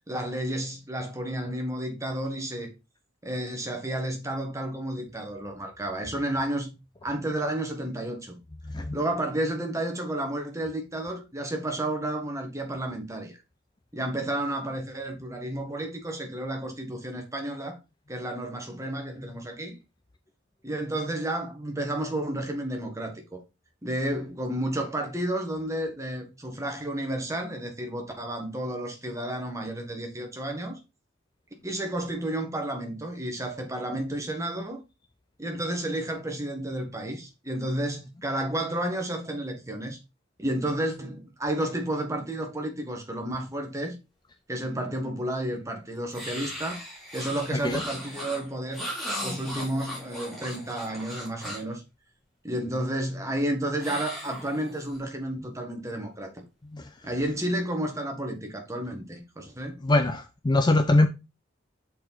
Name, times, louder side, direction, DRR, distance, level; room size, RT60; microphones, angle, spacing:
voice 1, 0.1-2.7 3.2-6.8 7.0-8.4 8.9-13.4 13.9-17.8 18.1-19.7 20.6-23.4 23.8-30.8 31.6-34.8 35.4-40.0 40.4-43.9 44.5-46.8 47.1-48.9 49.2-51.8 52.4-56.3 57.0-59.8, right 1 dB, 15° right, 1.3 m, -31 dB
sound 1, 46.1-51.7 53.8-55.0, equal, ahead, 2.6 m, -37 dB
voice 2, 59.8-61.1, left 2 dB, 20° left, 0.5 m, -22 dB
6.4 x 4.4 x 4.0 m
head